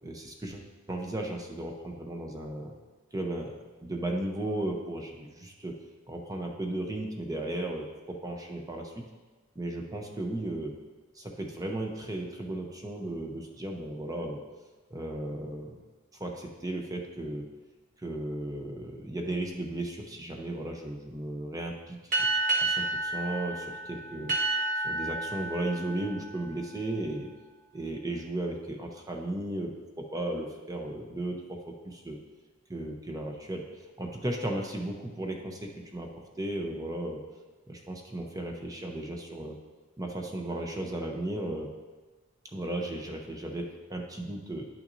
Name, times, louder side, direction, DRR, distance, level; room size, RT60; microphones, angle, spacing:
voice 1, 0.0-2.7 3.1-5.8 6.1-9.0 9.5-10.8 11.1-14.4 14.9-15.8 16.2-17.5 18.0-22.1 22.6-24.3 24.8-27.3 27.7-32.2 32.7-33.7 34.0-36.1 36.4-37.2 37.7-39.6 40.0-41.7 42.4-44.6, right 1 dB, 20° right, 1 dB, 0.7 m, -35 dB
sound 1, 22.1-27.2, right 2 dB, 40° right, 1.4 m, -31 dB
10.5 x 5.9 x 2.6 m, 1.3 s
head